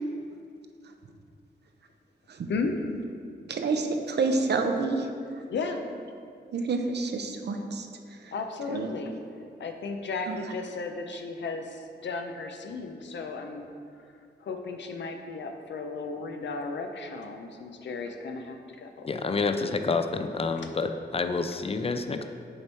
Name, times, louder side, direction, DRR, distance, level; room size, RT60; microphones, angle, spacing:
voice 1, 3.5-5.1 6.5-7.9 8.2-8.3 8.7-9.0 10.3-10.4, right 3 dB, 70° right, 5 dB, 0.6 m, -28 dB
voice 2, 8.3-9.2 9.6-13.7 14.4-19.1, left 4 dB, 85° left, 5 dB, 0.6 m, -34 dB
voice 3, 19.0-22.2, left 4 dB, 35° left, 7 dB, 0.4 m, -28 dB
6.4 x 4.4 x 4.6 m, 2.4 s
wide cardioid pair, 85°, 18 cm